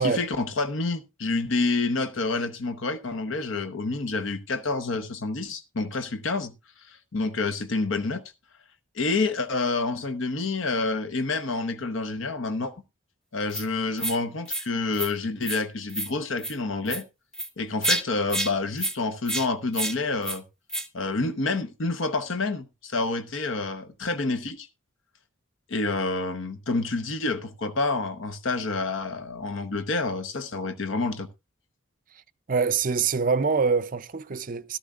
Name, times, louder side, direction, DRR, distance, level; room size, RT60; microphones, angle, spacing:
voice 1, 0.0-6.5 6.8-8.2 8.9-12.7 13.3-17.0 17.6-20.4 20.9-24.7 25.7-31.3, left 3 dB, 75° left, 0.9 m, -28 dB
sound 1, 13.5-13.6 14.0-14.2 14.5-14.7 14.9-15.1 15.4-15.6 15.9-16.1 16.4-16.5 16.9-17.0 17.3-17.5 17.8-18.0 18.3-18.5 18.8-18.9 19.3-19.5 19.7-19.9 20.2-20.4 20.7-20.9, right 1 dB, 5° left, 0.8 m, -29 dB
voice 2, 32.5-34.8, right 5 dB, 45° right, 0.5 m, -25 dB
13.5 x 13.0 x 2.4 m
head